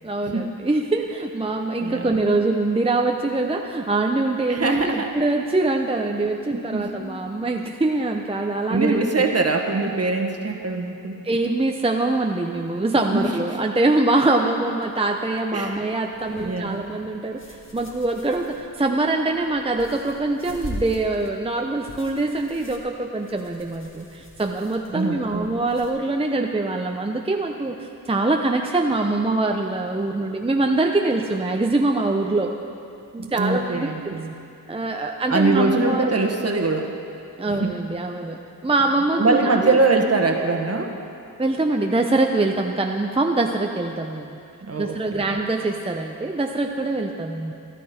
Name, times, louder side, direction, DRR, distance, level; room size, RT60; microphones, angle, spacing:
voice 1, 0.0-9.0 11.2-32.5 33.1-34.2 34.7-36.1 37.4-39.8 41.4-44.4 44.8-47.5, right 2 dB, 15° right, 2 dB, 0.7 m, -23 dB
voice 2, 1.8-2.2 4.5-5.1 6.2-7.1 8.7-11.2 13.1-13.3 15.5-15.8 16.4-16.8 24.9-25.5 33.2-34.4 35.3-37.0 37.5-37.7 39.2-40.9 44.6-45.4, right 3 dB, 40° right, 3 dB, 1.4 m, -23 dB
sound 1, 16.1-25.9, left 1 dB, 35° left, 2.0 m, -42 dB
14.0 x 11.5 x 4.4 m, 2.6 s
cardioid pair, 55°, 36 cm